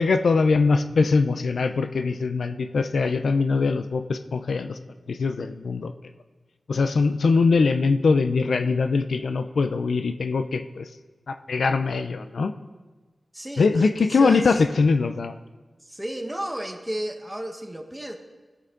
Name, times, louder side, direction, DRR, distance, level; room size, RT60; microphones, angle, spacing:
voice 1, 0.0-4.8 5.1-5.9 6.7-10.9 11.3-12.5 13.6-15.3, left 4 dB, 85° left, 9 dB, 0.5 m, -22 dB
voice 2, 13.3-14.6 15.8-18.2, right 1 dB, 10° right, 4 dB, 1.4 m, -32 dB
17.5 x 8.1 x 3.9 m, 1.3 s
wide cardioid pair, 65°, 0 cm